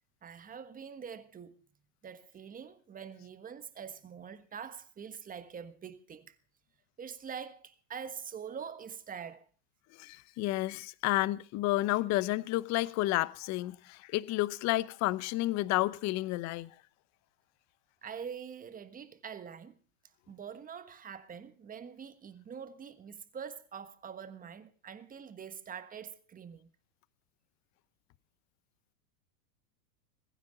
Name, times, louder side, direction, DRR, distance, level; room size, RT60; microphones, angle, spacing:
voice 1, 0.2-1.6 2.0-6.4 7.0-9.5 18.0-19.8 20.3-26.7, right 7 dB, 15° right, 1.4 m, -45 dB
voice 2, 9.9-16.7, left 18 dB, 35° left, 0.8 m, -31 dB
19.5 x 16.0 x 4.0 m
supercardioid pair, 140°, 50 cm